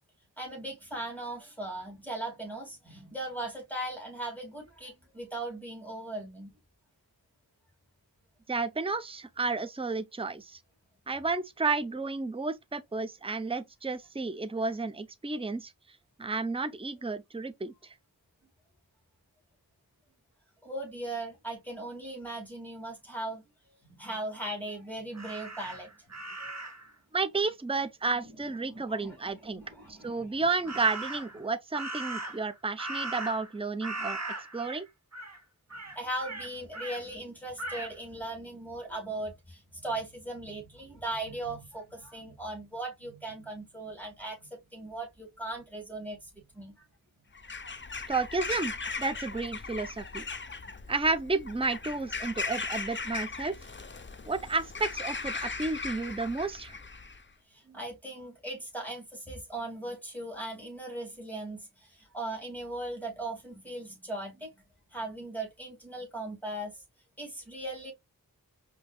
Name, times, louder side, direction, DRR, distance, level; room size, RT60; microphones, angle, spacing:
voice 1, 0.4-6.5 20.6-23.4 23.9-25.9 28.2-28.3 28.6-29.2 29.5-30.4 35.7-46.9 57.5-64.5 64.9-66.8 67.2-67.9, right 1 dB, 5° left, 2.2 m, -38 dB
voice 2, 8.5-10.6 11.1-15.7 16.2-17.9 27.1-29.6 29.9-34.2 34.5-34.8 48.1-50.2 50.9-53.6 54.3-56.8, right 3 dB, 15° right, 0.5 m, -32 dB
Crow, 25.1-26.9 30.6-31.4 31.7-33.5 33.8-34.8 35.1-35.4 35.7-37.0 37.6-37.9, right 2 dB, 45° right, 1.1 m, -38 dB
Bird vocalization bird call bird song / Crow, 47.3-57.2, left 4 dB, 30° left, 0.6 m, -38 dB
5.3 x 2.8 x 2.2 m
wide cardioid pair, 40°, 37 cm